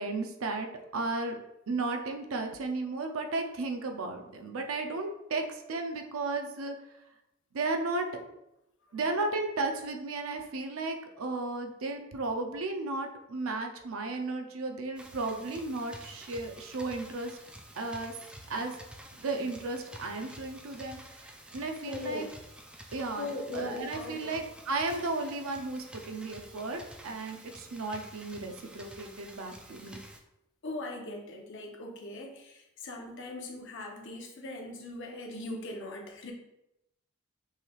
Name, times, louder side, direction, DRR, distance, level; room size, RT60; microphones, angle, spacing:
voice 1, 0.0-1.4 1.7-6.8 7.5-8.1 8.9-17.4 17.8-18.2 18.5-18.7 19.1-21.2 21.5-22.2 22.9-30.0, right 3 dB, 80° right, 5 dB, 0.5 m, -34 dB
sound 1, 15.0-30.2, right 1 dB, 5° right, 0.3 m, -50 dB
voice 2, 21.8-22.3 23.2-24.3 30.6-36.3, left 2 dB, 60° left, 1 dB, 0.8 m, -40 dB
5.6 x 3.2 x 2.4 m, 0.87 s
head